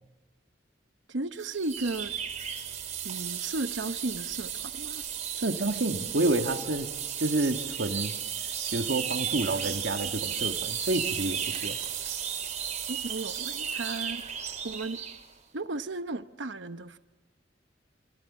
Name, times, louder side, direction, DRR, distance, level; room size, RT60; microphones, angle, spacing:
voice 1, 1.1-2.1 3.0-5.0 12.9-14.2 14.6-15.0 15.5-17.0, right 2 dB, 85° right, 1.0 m, -34 dB
sound 1, 1.4-15.3, right 8 dB, 40° right, 4.4 m, -34 dB
voice 2, 5.3-8.1 8.7-11.8, right 2 dB, 65° right, 1.6 m, -29 dB
28.5 x 27.5 x 7.3 m
head